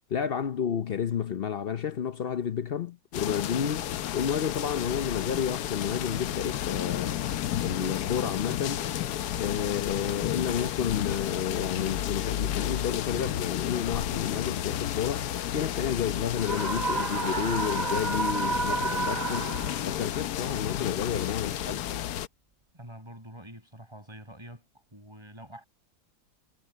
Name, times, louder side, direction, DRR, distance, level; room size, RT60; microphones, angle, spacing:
voice 1, 0.1-7.1 7.6-8.9 9.4-21.8, left 8 dB, 60° left, 0.6 m, -31 dB
sound 1, 3.1-22.3, left 11 dB, 75° left, 1.3 m, -32 dB
Screaming, 16.4-20.1, right 4 dB, 35° right, 0.9 m, -31 dB
voice 2, 22.7-24.6 24.9-25.7, right 1 dB, 15° right, 5.8 m, -46 dB
omnidirectional pair, 1.7 m